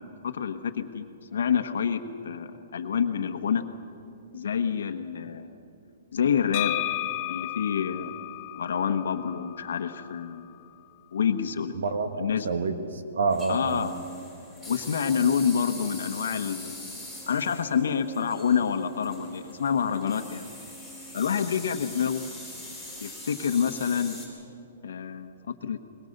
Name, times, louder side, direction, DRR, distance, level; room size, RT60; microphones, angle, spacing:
voice 1, 0.2-1.1 1.3-3.6 4.3-5.5 6.1-6.8 7.3-8.1 8.5-10.5 11.1-11.8 12.2-12.5 13.5-13.9 14.7-17.0 17.3-20.5 21.1-22.2 23.0-24.2 24.8-25.8, left 7 dB, 80° left, 6 dB, 1.2 m, -27 dB
sound 1, 6.5-10.3, left 17 dB, 35° left, 0.5 m, -33 dB
voice 2, 11.7-13.9, right 4 dB, 80° right, 8 dB, 1.8 m, -28 dB
sound 2, 13.3-24.3, left 1 dB, 10° right, 4.9 m, -42 dB
21.5 x 21.5 x 6.7 m, 2.7 s
hypercardioid pair, 160°, 0 cm